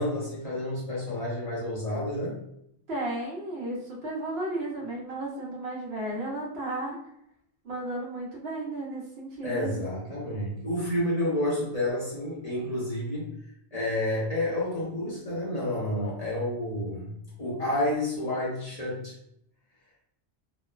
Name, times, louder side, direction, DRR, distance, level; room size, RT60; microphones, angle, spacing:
voice 1, 0.0-2.4 9.4-13.3 13.7-19.2, left 1 dB, 40° left, -7 dB, 0.9 m, -30 dB
voice 2, 2.9-7.0 7.6-9.8, right 1 dB, 65° right, -3 dB, 0.9 m, -34 dB
2.9 x 2.0 x 2.3 m, 0.74 s
omnidirectional pair, 1.2 m